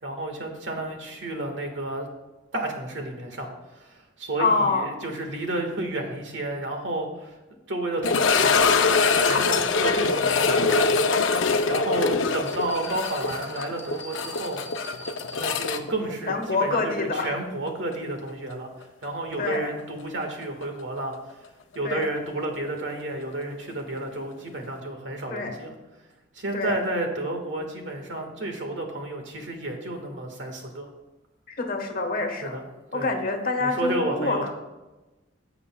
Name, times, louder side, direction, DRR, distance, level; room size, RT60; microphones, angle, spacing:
voice 1, 0.0-2.1 2.5-7.4 7.7-10.9 11.7-14.6 15.3-18.7 19.0-21.4 21.7-25.7 26.3-30.9 32.4-32.6 32.9-33.1 33.6-34.5, right 2 dB, 75° right, 3 dB, 1.6 m, -31 dB
voice 2, 4.4-4.9 16.3-17.3 19.4-19.7 21.8-22.1 25.3-25.6 26.5-26.8 31.5-32.6 32.9-34.5, left 3 dB, 50° left, 4 dB, 1.2 m, -26 dB
sound 1, 8.0-17.0 17.2-17.3 17.9-18.0 20.6-20.7, left 4 dB, 90° left, 0.6 m, -23 dB
sound 2, 12.5-15.8, equal, 10° left, 1.4 m, -44 dB
16.5 x 6.9 x 2.3 m, 1.1 s
head